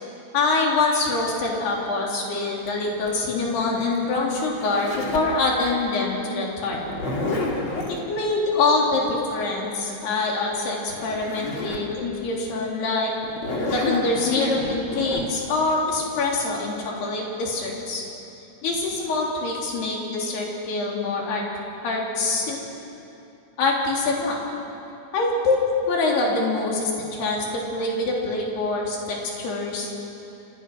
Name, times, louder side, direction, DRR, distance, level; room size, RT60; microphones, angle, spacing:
voice 1, 0.3-6.8 7.9-13.1 13.7-18.0 18.6-21.4 21.8-22.6 23.6-24.4 25.1-29.9, left 3 dB, 80° left, -2 dB, 5.5 m, -25 dB
Zipper (clothing), 2.7-5.4 6.7-8.0 10.6-10.7 10.9-11.9 12.4-12.5 13.2-15.2, left 2 dB, 35° left, 3.0 m, -29 dB
29.0 x 27.5 x 6.2 m, 2.8 s
omnidirectional pair, 4.6 m